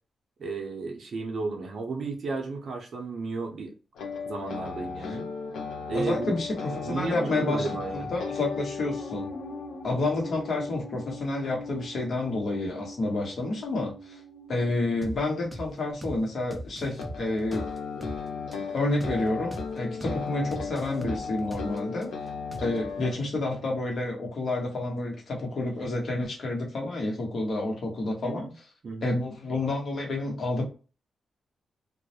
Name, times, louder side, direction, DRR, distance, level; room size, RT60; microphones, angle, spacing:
voice 1, 0.4-3.7 4.2-5.3 5.9-6.4 6.8-8.1 28.2-28.5 28.8-29.2, right 3 dB, 60° right, 0.6 m, -33 dB
sound 1, 3.9-15.9 16.9-23.1, left 5 dB, 90° left, 0.7 m, -37 dB
voice 2, 5.9-9.3 9.8-14.2 14.5-17.6 18.7-22.1 22.6-28.5 29.0-30.6, left 2 dB, 60° left, 1.0 m, -29 dB
sound 2, 15.0-15.2 15.5-15.7 16.0-16.2 16.5-18.2 18.5-18.6 19.0-19.2 19.5-19.7 20.0-20.2 20.5-22.1 22.5-22.9, right 1 dB, 10° right, 0.4 m, -39 dB
2.3 x 2.0 x 2.7 m
cardioid pair, 80°, 0 cm